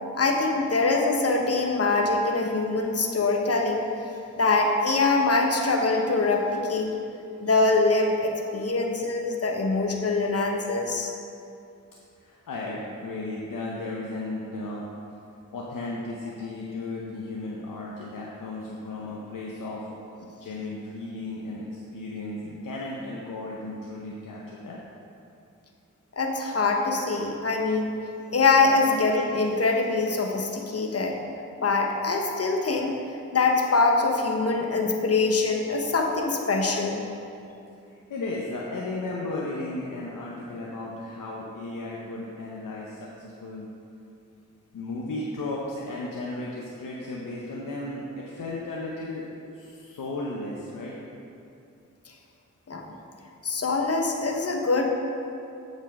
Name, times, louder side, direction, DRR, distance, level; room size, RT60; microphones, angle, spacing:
voice 1, 0.1-3.9 4.4-6.9 7.4-11.1 26.2-28.0 28.3-31.2 31.6-32.9 33.3-37.0 52.7-52.9 53.4-54.9, left 3 dB, 50° left, 2 dB, 1.1 m, -24 dB
voice 2, 12.2-14.8 15.5-19.8 20.2-24.8 37.8-43.7 44.7-49.3 49.5-51.0, left 2 dB, 85° left, -4 dB, 0.8 m, -35 dB
7.4 x 5.5 x 4.8 m, 2.6 s
cardioid pair, 40°, 32 cm